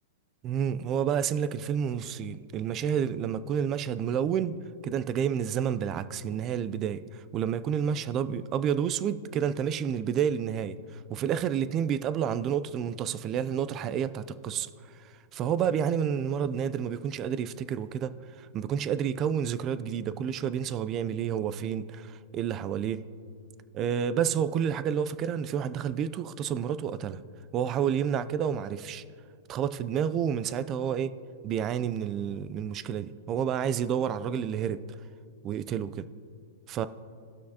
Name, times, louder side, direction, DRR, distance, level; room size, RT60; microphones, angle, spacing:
voice 1, 0.4-4.5 4.8-7.0 7.3-10.8 11.1-14.7 15.3-18.1 18.4-23.0 23.7-27.2 27.5-29.0 29.5-31.1 31.4-34.8 35.4-36.1 36.7-36.9, right 8 dB, 30° right, 0.4 m, -29 dB
18.0 x 6.3 x 2.8 m
hypercardioid pair, 145°, 0 cm